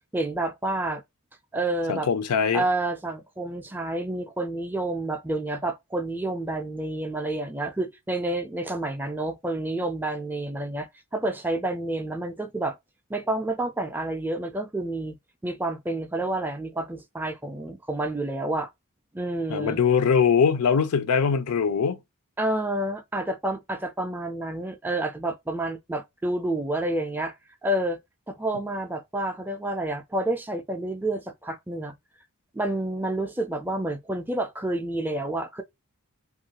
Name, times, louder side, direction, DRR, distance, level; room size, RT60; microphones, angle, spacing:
voice 1, 0.1-1.0 1.5-2.1 2.5-12.8 13.1-15.2 15.4-18.7 19.1-19.8 22.4-27.3 27.6-28.0 28.3-32.0 32.5-35.6, right 1 dB, 10° right, 0.3 m, -29 dB
voice 2, 1.9-2.7 19.5-22.0, left 6 dB, 85° left, 0.5 m, -22 dB
3.1 x 2.4 x 2.8 m
head